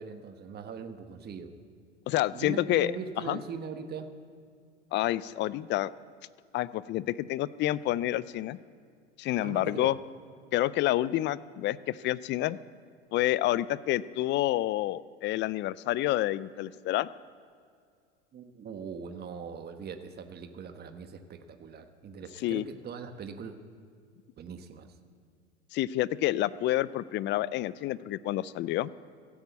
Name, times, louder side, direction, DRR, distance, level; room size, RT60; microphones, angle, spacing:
voice 1, 0.0-1.5 2.3-4.1 9.4-10.0 18.3-23.6 24.4-24.9, right 6 dB, 30° right, 8 dB, 1.2 m, -41 dB
voice 2, 2.1-2.9 3.3-3.4 4.9-5.9 6.5-8.6 9.2-10.0 10.5-12.6 13.1-17.1 22.4-22.6 25.7-28.9, left 15 dB, 35° left, 19 dB, 0.4 m, -28 dB
16.0 x 8.5 x 8.3 m, 2.2 s
hypercardioid pair, 95°, 35 cm